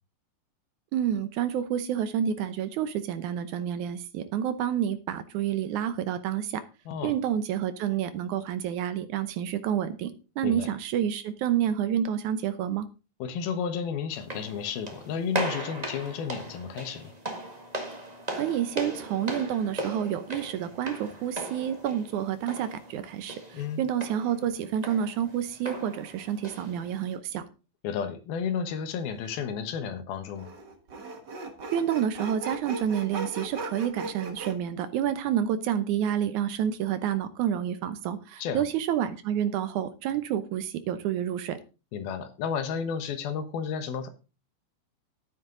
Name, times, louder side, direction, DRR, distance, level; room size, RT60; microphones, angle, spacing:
voice 1, 0.9-6.6 7.0-12.9 18.3-27.5 31.7-41.6, right 9 dB, 75° right, 12 dB, 1.9 m, -29 dB
voice 2, 13.2-17.1 23.5-23.8 27.8-30.5 38.4-38.6 41.9-44.1, left 6 dB, 80° left, 9 dB, 3.1 m, -32 dB
sound 1, 14.1-27.2, right 1 dB, 30° right, 0.6 m, -38 dB
Sawing, 29.2-29.3 30.4-34.5, right 2 dB, 50° right, 1.2 m, -38 dB
11.5 x 9.7 x 3.8 m, 0.32 s
omnidirectional pair, 4.3 m